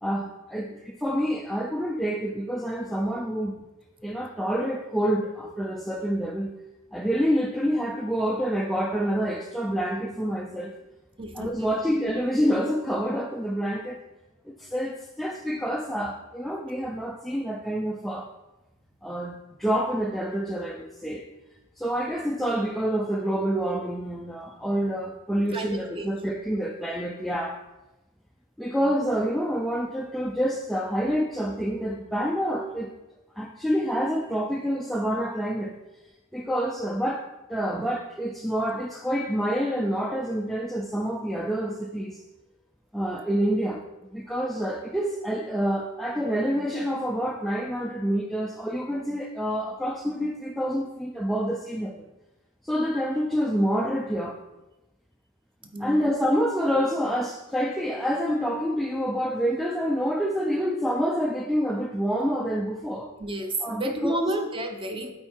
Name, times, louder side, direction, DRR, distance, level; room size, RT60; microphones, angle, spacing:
voice 1, 0.0-3.6 4.0-6.5 6.9-10.8 11.3-14.0 14.5-18.3 19.0-21.3 21.8-27.6 28.6-32.9 33.4-35.8 36.3-42.2 42.9-52.0 52.6-54.4 55.8-63.1 63.6-64.2, equal, ahead, 1 dB, 0.4 m, -27 dB
voice 2, 11.2-11.7 25.5-26.2 55.7-56.1 63.2-65.1, right 1 dB, 25° right, 5 dB, 0.8 m, -31 dB
8.8 x 4.4 x 4.5 m, 1.0 s
head